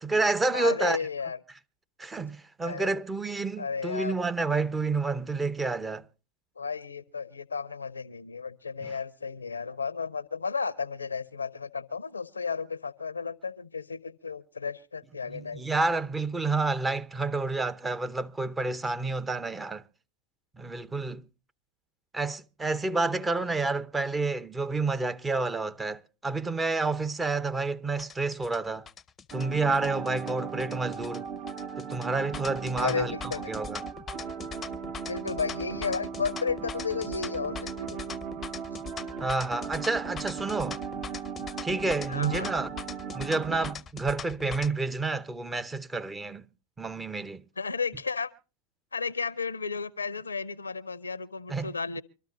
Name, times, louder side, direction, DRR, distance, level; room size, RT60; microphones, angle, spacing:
voice 1, 0.0-1.0 2.0-6.0 8.8-8.9 15.3-19.8 20.6-21.2 22.1-28.9 29.3-31.3 31.8-33.8 39.2-40.8 41.6-42.7 43.1-46.5 46.8-47.4 51.5-51.7, right 3 dB, 15° right, 0.7 m, -29 dB
voice 2, 0.5-1.4 2.6-2.9 3.6-4.1 6.6-15.6 23.4-23.5 32.8-33.5 35.1-38.2 42.1-42.5 47.6-48.3 48.9-52.0, left 5 dB, 90° left, 0.6 m, -33 dB
sound 1, 28.0-44.7, left 6 dB, 25° left, 0.6 m, -41 dB
sound 2, 29.3-43.8, right 6 dB, 45° right, 1.0 m, -38 dB
25.0 x 13.0 x 2.5 m
hypercardioid pair, 85°, 0 cm